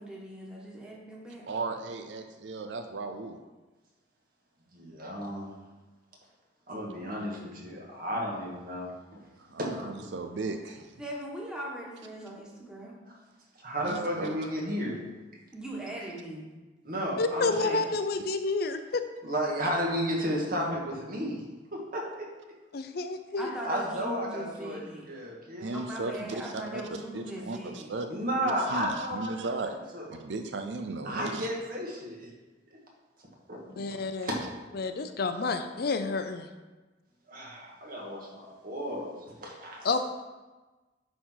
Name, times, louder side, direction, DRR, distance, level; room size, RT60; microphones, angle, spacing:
voice 1, 0.0-1.5 11.0-13.0 15.5-16.5 23.4-25.0 25.7-27.9, right 1 dB, 5° right, -4 dB, 1.7 m, -40 dB
voice 2, 1.5-3.4 9.5-10.9 13.8-14.3 25.6-28.1 28.7-29.8 30.1-31.5, right 3 dB, 80° right, 6 dB, 0.6 m, -36 dB
voice 3, 4.7-5.5 6.7-9.2 9.6-10.1 13.0-13.2 13.6-15.0 16.8-17.8 19.2-21.4 21.7-22.3 23.6-25.8 28.1-29.6 29.9-30.1 31.0-32.3 32.7-32.8 33.5-33.6 34.2-34.4 37.3-39.9, equal, 50° right, -2 dB, 1.9 m, -33 dB
voice 4, 17.2-19.0 22.7-23.5 33.8-34.3 34.7-36.5 39.8-40.0, left 3 dB, 60° left, 8 dB, 0.5 m, -29 dB
10.0 x 4.1 x 4.7 m, 1.2 s
head